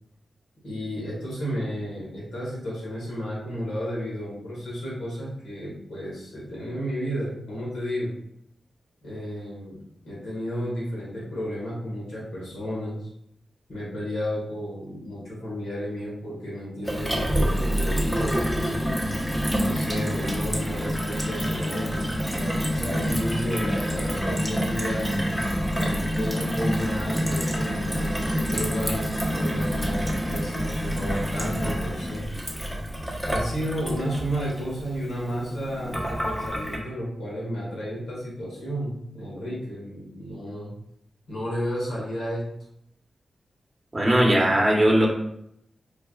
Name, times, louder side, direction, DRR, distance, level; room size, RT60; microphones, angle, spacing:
voice 1, 0.6-8.1 9.0-9.8 10.0-13.1 13.7-19.0 19.6-25.2 25.7-32.3 33.2-40.7 41.3-42.4, equal, 85° left, -6 dB, 1.4 m, -32 dB
Gurgling / Water tap faucet / Sink (filling or washing), 16.9-36.8, equal, 5° left, 0.8 m, -27 dB
voice 2, 43.9-45.1, right 1 dB, 25° right, -2 dB, 1.0 m, -19 dB
4.6 x 2.3 x 2.3 m, 0.76 s
cardioid pair, 45°, 0 cm